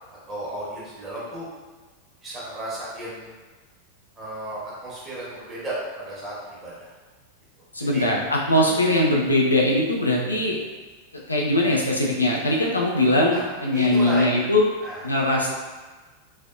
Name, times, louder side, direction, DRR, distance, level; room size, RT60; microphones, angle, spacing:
voice 1, 0.3-1.5 2.2-3.3 4.2-6.9 7.9-8.1 8.7-8.8 13.3-13.4 13.7-14.2 14.8-15.4, right 1 dB, 25° right, -7 dB, 1.5 m, -34 dB
voice 2, 7.7-10.6 11.3-14.6 15.0-15.5, left 1 dB, 80° left, -2 dB, 0.6 m, -21 dB
4.1 x 2.6 x 2.5 m, 1.3 s
figure-of-eight pair, 90°, 0 cm